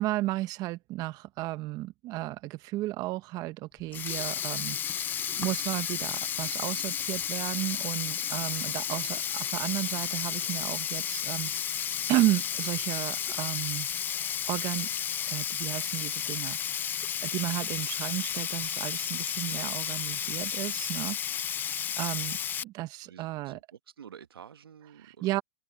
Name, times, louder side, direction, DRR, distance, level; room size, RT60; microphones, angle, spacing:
voice 1, 0.0-13.9 14.2-14.9 15.3-16.9 17.2-21.2 21.5-23.6 25.0-25.4, right 17 dB, 30° right, 1.2 m, -33 dB
Sink (filling or washing), 3.8-22.6, left 9 dB, 15° left, 0.4 m, -32 dB
voice 2, 23.0-25.4, right 8 dB, 85° right, 1.3 m, -50 dB
hypercardioid pair, 130°, 12 cm